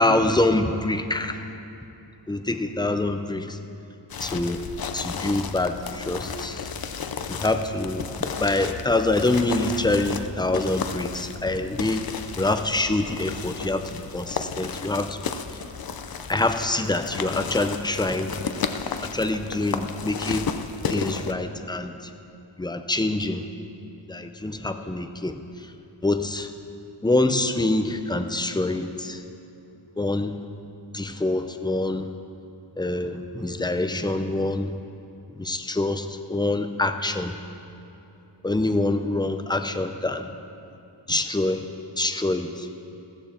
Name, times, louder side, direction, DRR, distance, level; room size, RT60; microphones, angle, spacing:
voice 1, 0.0-1.4 2.3-3.6 4.2-4.6 4.9-6.7 7.3-12.1 12.4-15.2 16.3-18.3 18.6-18.7 19.0-20.5 20.9-21.9 22.6-23.4 24.1-25.4 26.0-26.5 27.0-29.2 30.0-30.4 30.9-32.1 32.8-34.7 35.4-37.4 38.4-40.3 41.1-41.6 42.0-42.7, left 2 dB, 10° left, 7 dB, 0.7 m, -25 dB
sound 1, 4.1-21.3, left 6 dB, 50° left, 0.7 m, -33 dB
15.5 x 14.0 x 4.4 m, 2.8 s
wide cardioid pair, 110°, 46 cm